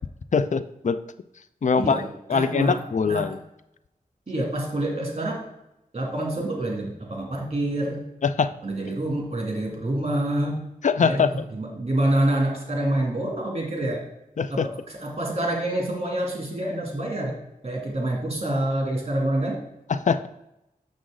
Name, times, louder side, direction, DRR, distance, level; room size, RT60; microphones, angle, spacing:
voice 1, 0.3-1.0 1.6-2.0 2.3-3.4 8.2-8.5 10.8-11.4 14.4-14.7 19.9-20.3, left 5 dB, 55° left, 12 dB, 0.4 m, -22 dB
voice 2, 1.8-3.3 4.3-5.4 5.9-8.0 8.6-10.6 11.0-14.0 14.5-14.7 15.0-17.4 17.6-19.6, right 1 dB, 40° right, 0 dB, 2.5 m, -27 dB
7.1 x 6.3 x 3.8 m, 0.85 s
wide cardioid pair, 65°, 15 cm